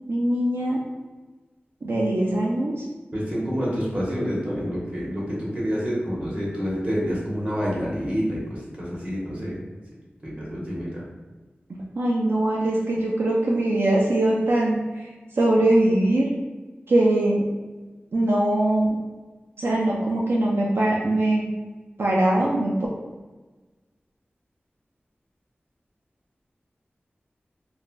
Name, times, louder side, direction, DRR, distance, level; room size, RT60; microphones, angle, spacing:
voice 1, 0.1-0.8 1.8-2.8 12.0-15.1 15.4-16.3 16.9-17.4 18.1-19.0 19.6-21.5 22.0-22.7, right 1 dB, 85° right, -3 dB, 0.4 m, -21 dB
voice 2, 3.1-9.6 10.2-11.0, equal, 35° right, -5 dB, 1.0 m, -28 dB
3.0 x 2.5 x 2.2 m, 1.2 s
wide cardioid pair, 75°, 4 cm